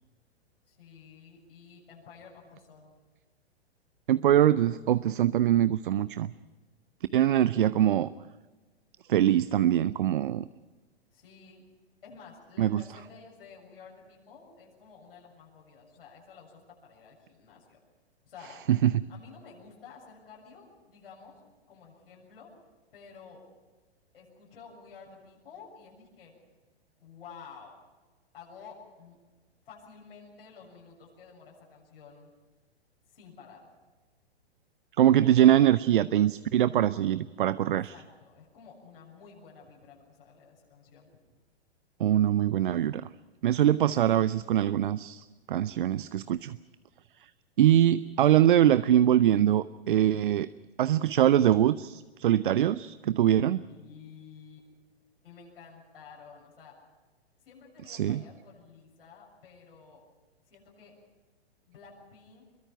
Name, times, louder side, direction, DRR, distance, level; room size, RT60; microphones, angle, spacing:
voice 1, 0.7-3.0 11.1-11.7 12.0-17.8 18.2-18.7 19.1-22.6 22.9-23.4 24.1-26.3 27.0-27.8 28.3-29.2 29.7-32.3 33.1-33.7 37.9-41.1 53.7-54.7 55.2-56.8 57.4-60.0 60.5-61.0 61.7-62.5, left 5 dB, 60° left, -2 dB, 7.2 m, -51 dB
voice 2, 4.1-6.3 7.1-8.1 9.1-10.5 12.6-12.8 18.7-19.0 35.0-37.9 42.0-43.1 43.4-46.6 47.6-50.5 50.8-53.6 57.9-58.2, right 11 dB, 55° right, 17 dB, 0.6 m, -23 dB
25.5 x 22.5 x 5.8 m, 1.3 s
figure-of-eight pair, 110°, 32 cm